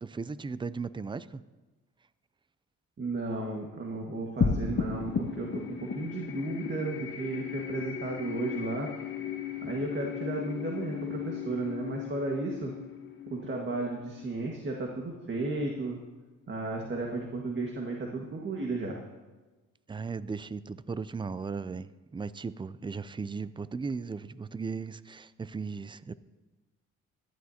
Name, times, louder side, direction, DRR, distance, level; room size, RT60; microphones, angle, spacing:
voice 1, 0.0-1.4 19.9-26.1, right 4 dB, 15° right, 0.4 m, -37 dB
voice 2, 3.0-8.9 9.6-12.7 13.3-16.0 16.5-19.0, right 2 dB, 40° right, 1.8 m, -34 dB
sound 1, 4.4-15.1, left 6 dB, 40° left, 1.3 m, -35 dB
17.5 x 13.0 x 2.9 m
cardioid pair, 90°, 30 cm